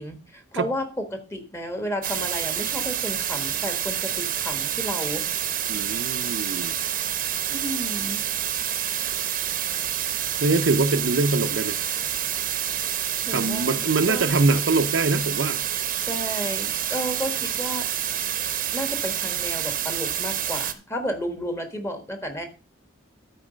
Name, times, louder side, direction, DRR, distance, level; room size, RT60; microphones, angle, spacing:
voice 1, 0.0-5.2 7.5-8.2 13.2-14.4 16.0-17.9 18.7-22.4, equal, 15° left, 1.4 m, -32 dB
sound 1, 2.0-20.7, right 10 dB, 45° right, 0.8 m, -28 dB
voice 2, 5.7-6.8 10.4-11.8 13.3-15.6, right 3 dB, 75° right, 0.7 m, -23 dB
12.0 x 4.8 x 5.1 m
head